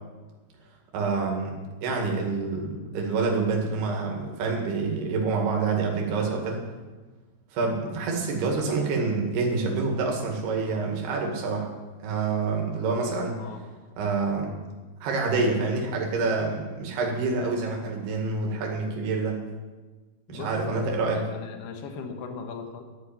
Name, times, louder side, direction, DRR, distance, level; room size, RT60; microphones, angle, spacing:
voice 1, 0.9-6.6 7.5-11.7 12.0-13.4 14.0-14.5 15.0-19.4 20.3-21.3, right 4 dB, 65° right, 0 dB, 3.9 m, -27 dB
voice 2, 13.3-13.7 14.5-14.6 20.3-20.8 21.1-22.8, left 5 dB, 70° left, 3 dB, 3.1 m, -39 dB
13.0 x 6.5 x 9.0 m, 1.3 s
omnidirectional pair, 5.2 m